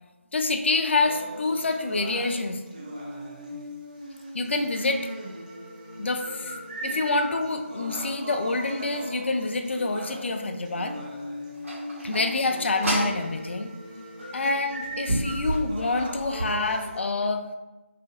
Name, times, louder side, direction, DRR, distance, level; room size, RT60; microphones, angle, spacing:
voice 1, 0.3-2.6 4.3-5.1 6.0-6.5 6.8-10.9 12.0-13.7 14.3-17.4, left 3 dB, 60° left, 5 dB, 0.4 m, -27 dB
sound 1, 1.0-17.0, equal, 35° right, 0.5 m, -38 dB
sound 2, 11.6-13.2 14.2-14.3 14.8-16.6, right 1 dB, 75° right, 1.1 m, -30 dB
2.7 x 2.4 x 3.7 m, 1.0 s
figure-of-eight pair, 170°, 7 cm